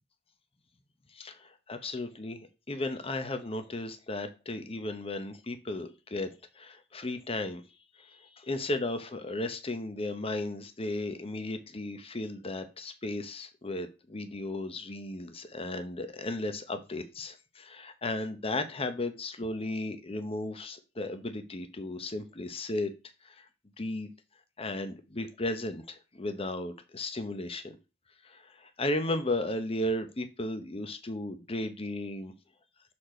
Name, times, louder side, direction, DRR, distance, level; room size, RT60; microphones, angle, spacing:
voice 1, 1.1-7.6 8.0-22.9 23.2-23.5 23.8-24.1 24.6-27.8 28.2-32.3, left 2 dB, 30° left, 9 dB, 0.8 m, -35 dB
6.6 x 4.3 x 4.3 m, 0.29 s
head